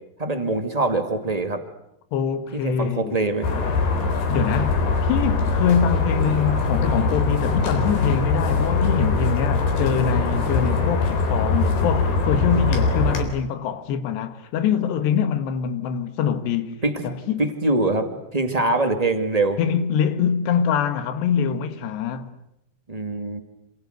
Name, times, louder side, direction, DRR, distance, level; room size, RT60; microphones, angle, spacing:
voice 1, 0.2-1.6 2.5-3.5 16.8-17.0 17.4-19.6 22.9-23.4, right 2 dB, 20° right, 1.0 m, -23 dB
voice 2, 2.1-3.2 4.3-16.8 17.0-17.5 19.6-22.3, left 8 dB, 90° left, 3.7 m, -24 dB
sound 1, 3.4-13.2, left 3 dB, 75° left, 6.0 m, -22 dB
28.0 x 26.5 x 8.1 m
omnidirectional pair, 4.7 m